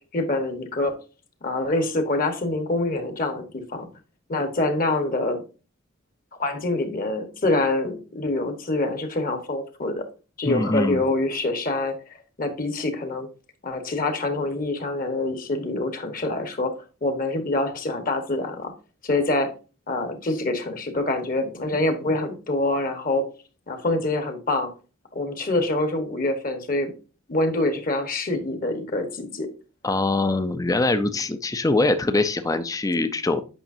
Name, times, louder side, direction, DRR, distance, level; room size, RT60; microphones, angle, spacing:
voice 1, 0.1-0.9 1.4-3.9 4.3-5.4 6.4-10.0 10.4-11.9 12.4-13.3 13.6-16.7 17.0-18.7 19.0-19.5 19.9-23.3 23.7-24.7 25.1-26.9 27.3-29.5, left 2 dB, 40° left, 7 dB, 1.2 m, -25 dB
voice 2, 10.5-11.0 29.8-33.4, left 2 dB, 15° left, 10 dB, 0.5 m, -23 dB
8.9 x 5.7 x 2.7 m, 0.34 s
head